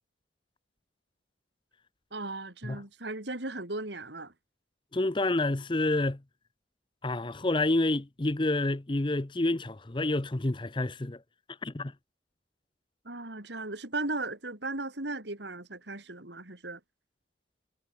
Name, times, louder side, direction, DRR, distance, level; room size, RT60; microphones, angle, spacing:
voice 1, 2.1-4.3 13.1-16.8, right 2 dB, 65° right, 3.5 m, -36 dB
voice 2, 4.9-6.2 7.0-11.2 11.6-11.9, left 2 dB, 25° left, 0.7 m, -28 dB
head